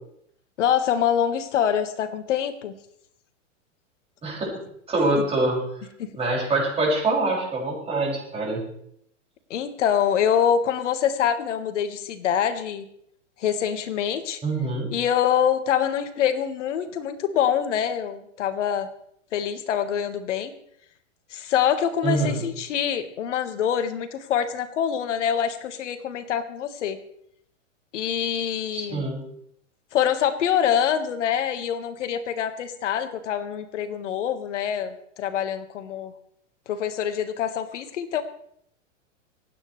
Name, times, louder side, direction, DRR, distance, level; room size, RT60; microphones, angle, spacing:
voice 1, 0.6-2.8 6.0-6.2 9.5-12.9 13.4-14.4 14.9-18.9 19.3-20.5 21.3-27.0 27.9-29.1 29.9-36.1 36.7-38.2, left 9 dB, 70° left, 9 dB, 1.7 m, -25 dB
voice 2, 4.2-4.6 4.9-5.6 6.2-8.6 14.4-14.9 22.0-22.4 28.7-29.2, right 2 dB, 15° right, -4 dB, 6.3 m, -25 dB
27.0 x 9.4 x 3.3 m, 0.70 s
hypercardioid pair, 120°, 38 cm